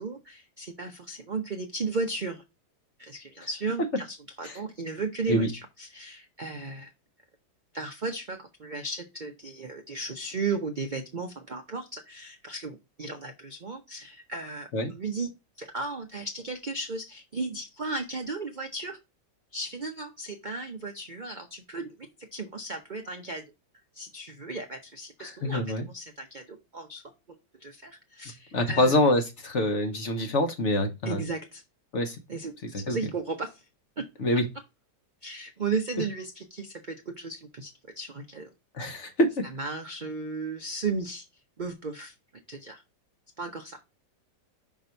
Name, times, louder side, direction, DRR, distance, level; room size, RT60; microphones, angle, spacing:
voice 1, 0.0-2.4 3.0-6.9 7.7-19.0 19.5-23.4 23.9-27.0 27.6-29.0 31.0-31.6 32.3-33.6 34.0-34.1 35.2-38.5 39.5-41.2 41.6-42.1 42.5-42.8 43.4-43.8, right 3 dB, 50° right, 4 dB, 0.6 m, -35 dB
voice 2, 25.2-25.8 28.5-31.2 31.9-32.2 32.9-33.0 34.2-34.5 38.8-39.5, left 1 dB, 50° left, 6 dB, 1.1 m, -25 dB
6.0 x 4.1 x 4.4 m, 0.24 s
omnidirectional pair, 1.8 m